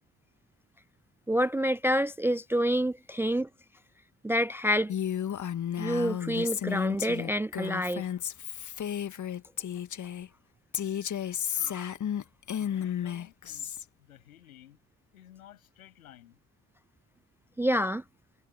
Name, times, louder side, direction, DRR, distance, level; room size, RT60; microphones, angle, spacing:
voice 1, 1.3-3.5 4.2-4.9 5.8-8.1 11.7-11.9 17.6-18.0, equal, 5° right, 0.4 m, -27 dB
Female speech woman speaking, 4.9-10.3 10.7-13.8, left 9 dB, 45° left, 2.0 m, -33 dB
voice 2, 12.5-13.7 14.0-14.8 15.1-16.4, left 12 dB, 80° left, 7.7 m, -54 dB
figure-of-eight pair, 45°, 42 cm